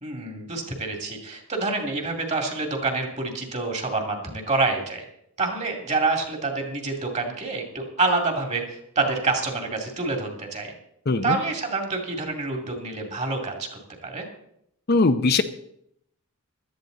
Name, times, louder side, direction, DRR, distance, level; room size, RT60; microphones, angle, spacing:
voice 1, 0.0-5.0 5.4-10.7 11.2-13.7 14.0-14.2, right 3 dB, 30° right, 3 dB, 2.6 m, -27 dB
voice 2, 11.1-11.4 14.9-15.4, left 3 dB, 45° left, 9 dB, 0.7 m, -20 dB
16.5 x 12.5 x 4.0 m, 0.74 s
head